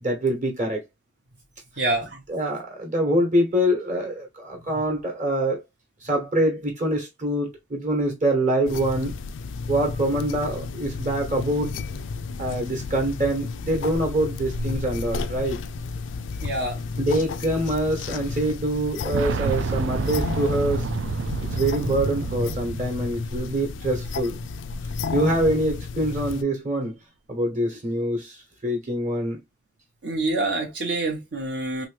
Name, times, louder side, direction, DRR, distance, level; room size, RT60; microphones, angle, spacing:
voice 1, 0.0-0.8 2.3-5.6 6.0-9.1 9.7-11.8 12.4-15.6 17.0-20.9 21.4-24.4 25.1-27.0 27.3-29.4, right 1 dB, 40° right, 1.1 m, -25 dB
voice 2, 1.8-2.2 16.4-16.8 30.0-31.9, right 2 dB, 65° right, 0.8 m, -26 dB
sound 1, 8.7-26.4, left 4 dB, 90° left, 0.4 m, -32 dB
Boom, 19.1-23.9 24.1-24.2 25.3-25.4, right 5 dB, 85° right, 0.3 m, -29 dB
3.0 x 3.0 x 3.1 m
head